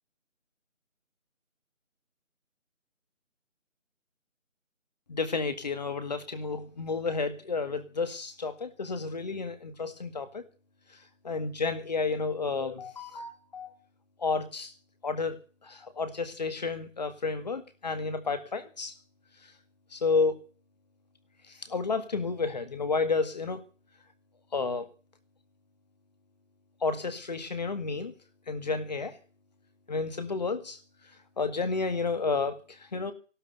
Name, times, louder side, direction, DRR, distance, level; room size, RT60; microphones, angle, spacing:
voice 1, 5.1-10.4 11.2-13.7 14.2-14.7 15.0-15.4 15.6-18.9 19.9-20.5 21.7-23.6 24.5-24.9 26.8-28.1 28.5-29.1 29.9-30.8 31.4-33.1, left 4 dB, 30° left, 9 dB, 2.0 m, -31 dB
15.5 x 12.5 x 6.9 m, 0.38 s
figure-of-eight pair, 165°, 39 cm